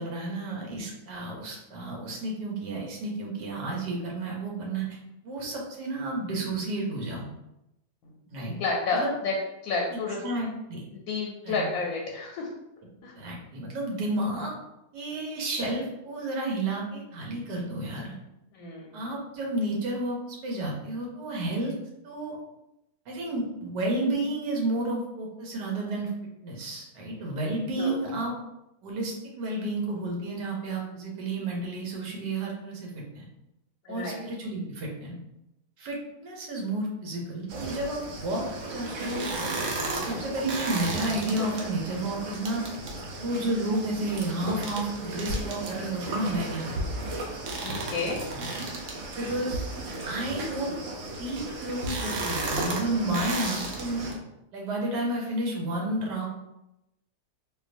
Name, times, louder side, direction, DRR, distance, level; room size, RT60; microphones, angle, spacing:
voice 1, 0.0-5.0 5.2-7.3 8.3-8.5 8.9-9.1 9.9-10.8 11.4-11.7 13.2-14.5 14.9-18.1 18.9-21.7 22.0-22.4 23.1-26.1 26.4-28.3 28.8-33.2 33.9-35.2 35.8-39.7 40.0-42.6 43.2-47.1 48.3-48.5 49.1-49.7 50.1-50.8 51.2-54.0 54.5-56.3, right 2 dB, 90° right, -1 dB, 1.4 m, -31 dB
voice 2, 8.0-9.3 9.6-10.2 10.9-12.5 13.0-13.1 18.5-19.0 27.8-28.0 33.8-34.2 47.6-48.2, left 4 dB, 70° left, -1 dB, 1.0 m, -31 dB
sound 1, 37.5-54.1, right 2 dB, 65° right, 0.8 m, -34 dB
4.3 x 2.3 x 2.5 m, 0.88 s
omnidirectional pair, 1.8 m